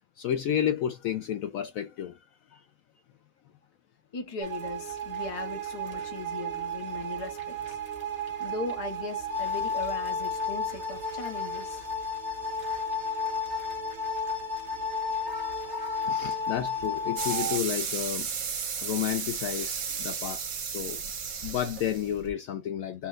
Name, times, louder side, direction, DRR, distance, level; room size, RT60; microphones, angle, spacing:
voice 1, 0.2-2.2 2.5-2.6 16.0-18.3 18.8-21.0 21.4-23.1, left 10 dB, 70° left, 0.9 m, -31 dB
voice 2, 4.1-7.8 8.4-11.9, left 3 dB, 30° left, 0.8 m, -38 dB
sound 1, 4.4-17.6, left 2 dB, 45° right, 1.6 m, -33 dB
sound 2, 17.2-22.3, right 6 dB, 65° right, 1.3 m, -34 dB
4.3 x 2.2 x 3.7 m
omnidirectional pair, 1.7 m